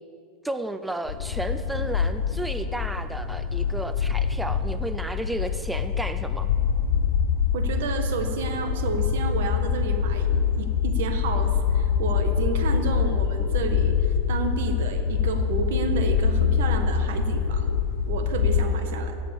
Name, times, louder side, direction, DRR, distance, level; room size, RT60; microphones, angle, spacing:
voice 1, 0.4-6.5, right 1 dB, 5° right, 9 dB, 0.5 m, -33 dB
sound 1, 1.1-18.6, left 7 dB, 80° left, 0.9 m, -25 dB
voice 2, 7.5-17.7 18.1-19.2, right 4 dB, 80° right, 6 dB, 1.6 m, -31 dB
16.5 x 7.4 x 7.0 m, 2.6 s
supercardioid pair, 145°, 0 cm